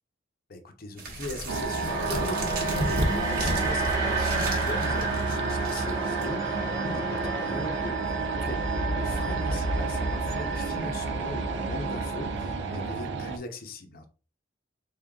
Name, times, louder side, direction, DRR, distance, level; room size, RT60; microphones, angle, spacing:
voice 1, 0.5-8.6 8.9-14.1, left 1 dB, 50° left, 5 dB, 0.7 m, -39 dB
sound 1, 1.0-6.3, right 1 dB, 50° right, 1.1 m, -33 dB
sound 2, 1.5-13.4, right 4 dB, 65° right, 0.5 m, -30 dB
sound 3, 1.9-12.9, right 1 dB, 20° right, 1.0 m, -33 dB
3.7 x 3.7 x 2.3 m, 0.36 s
head